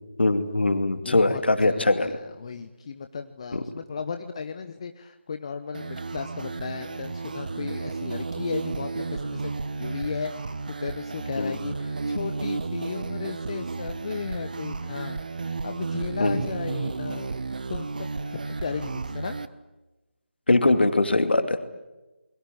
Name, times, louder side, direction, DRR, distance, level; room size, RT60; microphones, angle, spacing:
voice 1, 0.2-2.1 3.5-3.6 11.4-11.5 16.2-16.4 20.5-21.6, left 2 dB, 60° left, 8 dB, 2.7 m, -22 dB
voice 2, 1.0-9.5 9.8-17.4 17.7-19.3, left 5 dB, 30° left, 8 dB, 1.0 m, -35 dB
sound 1, 5.7-19.5, right 4 dB, 45° right, 1.0 m, -33 dB
29.0 x 22.0 x 8.6 m, 1.1 s
figure-of-eight pair, 155°, 6 cm